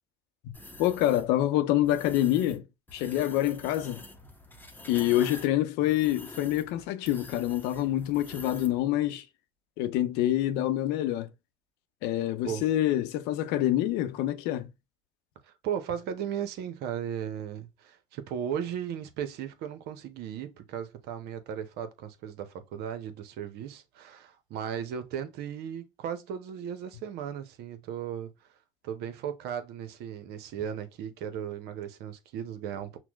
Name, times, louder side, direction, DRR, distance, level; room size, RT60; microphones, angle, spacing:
sound 1, 0.5-1.3 1.8-2.6 2.9-8.8, left 2 dB, 10° left, 1.0 m, -46 dB
voice 1, 0.8-2.7 2.9-4.0 4.9-9.2 9.8-11.3 12.0-14.7, left 13 dB, 70° left, 0.6 m, -26 dB
voice 2, 15.5-28.3 28.8-33.0, right 9 dB, 65° right, 0.7 m, -36 dB
5.9 x 2.1 x 2.3 m
hypercardioid pair, 70°, 18 cm